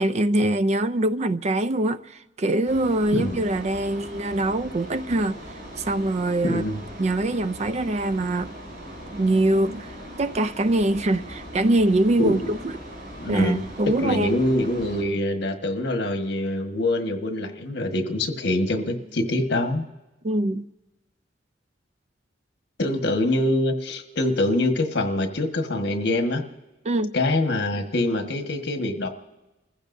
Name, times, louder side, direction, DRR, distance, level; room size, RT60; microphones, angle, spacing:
voice 1, 0.0-5.4 5.8-6.6 7.0-8.6 9.1-9.9 10.2-12.8 13.3-14.4 20.2-20.7 26.8-27.2, right 1 dB, 35° right, 0.4 m, -23 dB
sound 1, 2.6-15.0, equal, 55° right, 5.5 m, -40 dB
voice 2, 6.4-6.8 12.2-12.5 13.2-19.8 22.8-26.4 27.1-29.1, left 1 dB, 60° left, 1.5 m, -24 dB
29.5 x 15.5 x 2.7 m
head